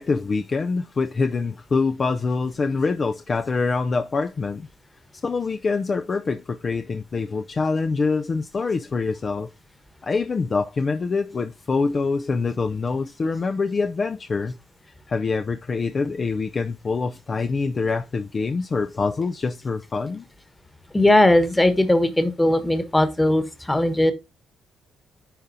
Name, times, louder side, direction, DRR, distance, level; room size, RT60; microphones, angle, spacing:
voice 1, 0.0-4.7 5.2-9.5 10.0-14.6 15.1-20.2, left 4 dB, 40° left, 0.4 m, -25 dB
voice 2, 20.9-24.1, left 1 dB, 10° left, 1.3 m, -18 dB
10.0 x 3.7 x 2.7 m
cardioid pair, 90°, 0 cm